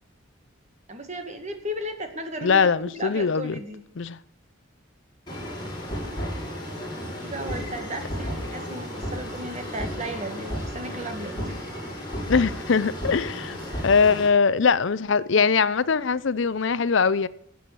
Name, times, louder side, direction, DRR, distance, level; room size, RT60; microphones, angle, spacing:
voice 1, 0.9-3.8 7.2-11.6, equal, 35° right, 2.0 m, -35 dB
voice 2, 2.4-3.6 4.0-4.2 12.3-13.6 13.8-17.3, left 5 dB, 65° left, 0.6 m, -21 dB
sound 1, 5.3-14.3, equal, 20° left, 6.6 m, -33 dB
13.5 x 8.5 x 6.1 m
head